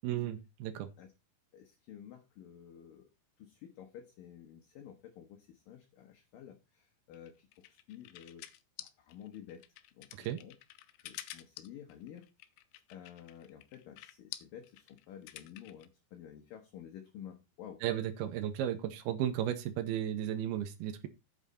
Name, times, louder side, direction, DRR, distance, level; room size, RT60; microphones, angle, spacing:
voice 1, 0.0-0.9 10.1-10.4 17.8-21.1, right 11 dB, 75° right, 12 dB, 2.6 m, -34 dB
voice 2, 1.5-3.1 3.4-9.6 9.9-10.6 11.0-12.3 12.9-17.8, left 9 dB, 65° left, 4 dB, 2.5 m, -51 dB
sound 1, 7.1-15.9, left 14 dB, 85° left, 2.9 m, -49 dB
8.8 x 8.8 x 4.2 m, 0.26 s
omnidirectional pair, 4.9 m